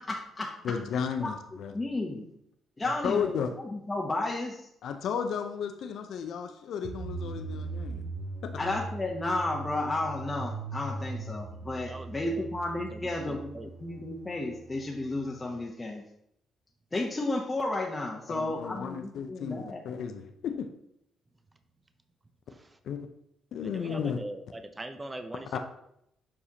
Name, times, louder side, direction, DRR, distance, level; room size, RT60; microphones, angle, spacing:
voice 1, 0.0-0.5 0.9-1.3 1.7-2.3 2.8-4.7 8.6-16.0 16.9-19.8, left 2 dB, 20° left, -2 dB, 0.8 m, -33 dB
voice 2, 0.6-1.7 2.8-3.5 4.8-8.0 8.4-8.5 18.3-20.7 22.8-23.1 23.5-24.2 25.5-25.6, left 7 dB, 70° left, 6 dB, 0.6 m, -33 dB
sound 1, 6.8-15.7, right 3 dB, 70° right, 0.7 m, -40 dB
voice 3, 11.9-12.5 12.9-13.7 22.5-22.8 23.6-25.6, right 2 dB, 20° right, 8 dB, 0.5 m, -42 dB
7.3 x 4.9 x 2.8 m, 0.77 s
cardioid pair, 90°, 0 cm